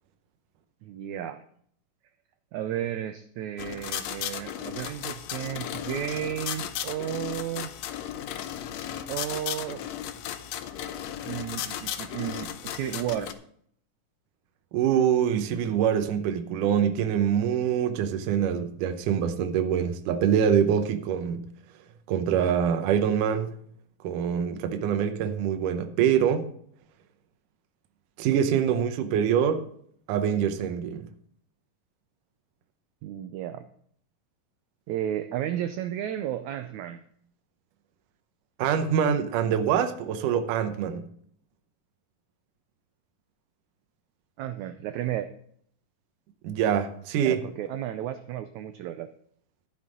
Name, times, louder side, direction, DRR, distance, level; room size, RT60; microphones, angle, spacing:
voice 1, 0.8-1.4 2.5-7.7 9.1-9.8 11.2-13.3 33.0-33.7 34.9-37.0 44.4-45.3 47.2-49.1, right 11 dB, 90° right, 1.6 m, -33 dB
sound 1, 3.6-13.3, left 10 dB, 90° left, 1.5 m, -35 dB
voice 2, 14.7-21.5 22.1-23.6 24.0-26.5 28.2-29.7 30.1-31.1 38.6-41.1 46.4-47.4, right 8 dB, 75° right, 2.3 m, -25 dB
12.0 x 9.7 x 3.8 m
omnidirectional pair, 4.1 m